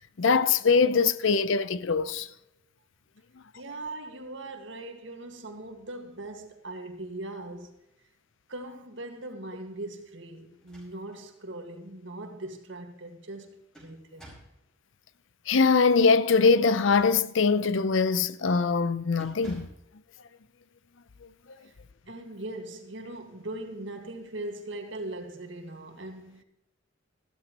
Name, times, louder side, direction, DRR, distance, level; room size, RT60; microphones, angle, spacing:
voice 1, 0.2-2.3 15.5-19.7, left 4 dB, 70° left, 0.6 m, -22 dB
voice 2, 3.6-7.8 8.5-14.3 21.6-21.7 22.1-26.4, right 2 dB, 65° right, 1.8 m, -40 dB
sound 1, 10.5-11.3 11.7-11.8 13.3-14.6 16.6-17.5 18.0-18.3 18.6-18.8 19.2-19.9, equal, 5° left, 5.2 m, -51 dB
15.0 x 13.0 x 3.0 m
head